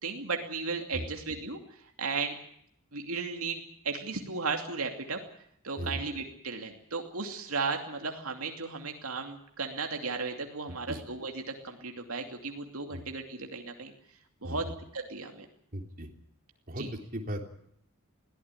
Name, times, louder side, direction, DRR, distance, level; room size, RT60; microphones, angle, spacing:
voice 1, 0.0-1.6 2.0-2.4 2.9-5.2 5.6-13.9 14.4-15.5 16.8-16.9, right 4 dB, 75° right, 3 dB, 2.7 m, -35 dB
voice 2, 15.7-16.1 16.7-16.8 17.1-17.4, equal, 40° right, 3 dB, 3.3 m, -36 dB
22.0 x 16.0 x 9.8 m, 0.69 s
head